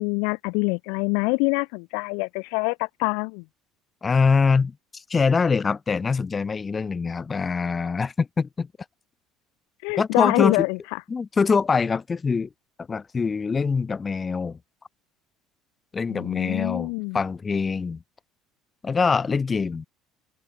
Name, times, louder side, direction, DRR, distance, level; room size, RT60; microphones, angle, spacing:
voice 1, 0.0-3.4 9.8-11.0 16.1-17.2, left 37 dB, 85° left, 3.9 m, -25 dB
voice 2, 4.0-8.7 10.0-10.7 11.1-12.5 12.9-14.6 15.9-18.0 18.8-19.8, left 5 dB, 20° left, 4.1 m, -24 dB
open air
cardioid pair, 130°, 0 cm